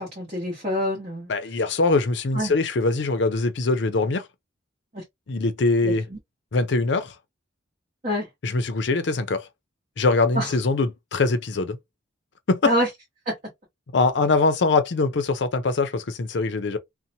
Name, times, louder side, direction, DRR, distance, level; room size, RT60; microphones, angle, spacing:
voice 1, 0.0-1.3 2.3-2.5 4.9-5.0 5.8-6.2 8.0-8.3 10.3-10.5 12.6-12.9 13.3-13.4, equal, 35° right, 1.0 m, -26 dB
voice 2, 1.3-4.3 5.3-6.1 6.5-7.1 8.4-9.5 10.0-11.8 12.5-12.7 13.9-16.8, left 3 dB, 60° left, 0.5 m, -22 dB
2.7 x 2.1 x 2.6 m
head